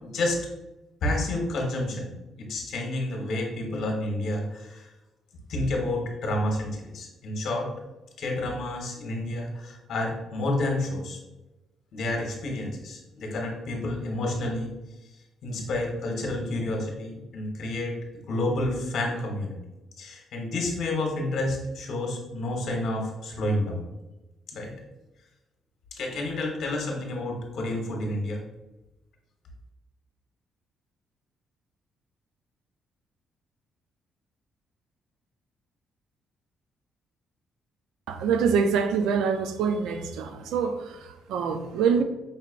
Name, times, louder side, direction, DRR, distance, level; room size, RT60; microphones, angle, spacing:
voice 1, 0.0-0.4 1.0-4.9 5.5-7.7 8.2-11.2 11.9-14.7 15.4-17.9 18.3-19.6 20.0-23.8 24.5-24.7 25.9-28.4, left 1 dB, 70° left, 1.1 m, -29 dB
voice 2, 38.1-42.0, right 6 dB, 90° right, 0.4 m, -25 dB
5.5 x 3.3 x 2.5 m
cardioid pair, 90°, 0 cm